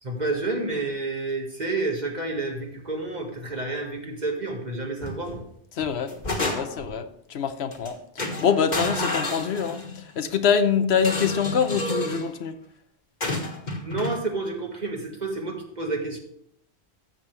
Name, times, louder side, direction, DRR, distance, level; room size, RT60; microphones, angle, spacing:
voice 1, 0.0-5.3 13.8-16.2, right 3 dB, 40° right, 1 dB, 1.9 m, -29 dB
sound 1, 5.0-5.4 5.8-6.9 7.7-7.9 8.2-10.0 10.9-12.3 13.2-14.2, left 1 dB, 45° left, 1.7 m, -30 dB
voice 2, 5.8-12.5, left 7 dB, 75° left, 10 dB, 1.0 m, -25 dB
13.5 x 7.7 x 3.3 m, 0.70 s
omnidirectional pair, 1.1 m